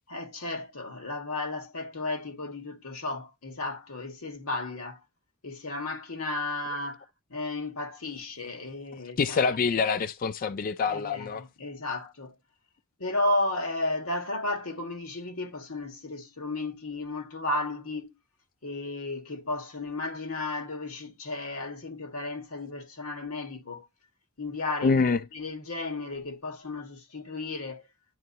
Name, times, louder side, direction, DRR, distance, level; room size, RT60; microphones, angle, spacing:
voice 1, 0.1-5.0 5.4-7.0 7.3-9.4 10.8-12.3 13.0-18.2 18.6-23.9 24.4-25.0 25.3-27.8, left 2 dB, 80° left, 1.9 m, -33 dB
voice 2, 9.2-11.4 24.8-25.2, left 5 dB, 40° left, 0.4 m, -25 dB
10.5 x 3.6 x 2.9 m
head